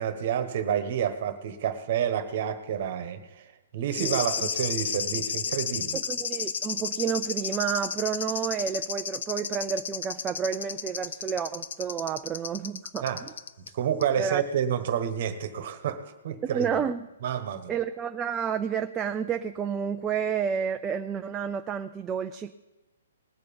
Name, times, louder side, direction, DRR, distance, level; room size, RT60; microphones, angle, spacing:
voice 1, 0.0-3.5 3.7-6.0 13.0-13.2 13.7-16.7 17.2-17.8, right 9 dB, 35° right, 10 dB, 1.3 m, -29 dB
sound 1, 3.9-13.7 14.0-14.1, left 7 dB, 55° left, 0.6 m, -33 dB
voice 2, 4.0-4.5 5.9-13.3 14.2-14.4 16.4-17.1 17.7-22.5, right 7 dB, 10° right, 6 dB, 0.3 m, -30 dB
20.0 x 6.8 x 5.3 m, 1.0 s
hypercardioid pair, 170°, 0 cm